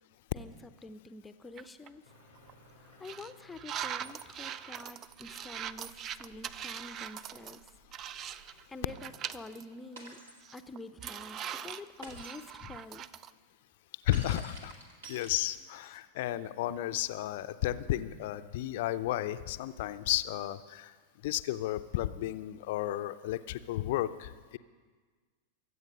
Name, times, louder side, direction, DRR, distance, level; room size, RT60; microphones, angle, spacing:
voice 1, 0.3-2.1 2.8-7.7 8.2-10.2 10.5-13.1, left 2 dB, 10° left, 11 dB, 0.7 m, -48 dB
sound 1, 1.6-1.9 2.4-2.5 3.0-8.6 8.9-9.6 10.0-10.1 10.4-13.3, right 9 dB, 30° right, 0.4 m, -41 dB
sound 2, 2.0-9.3, right 1 dB, 85° right, 5.4 m, -61 dB
Shatter, 10.0-10.4 12.0-12.5 14.1-15.8, right 2 dB, 65° right, 2.3 m, -48 dB
voice 2, 14.0-14.7 15.1-20.9 21.2-24.6, left 14 dB, 50° left, 13 dB, 0.6 m, -33 dB
24.0 x 8.0 x 5.4 m, 1.5 s
figure-of-eight pair, 90°, 0 cm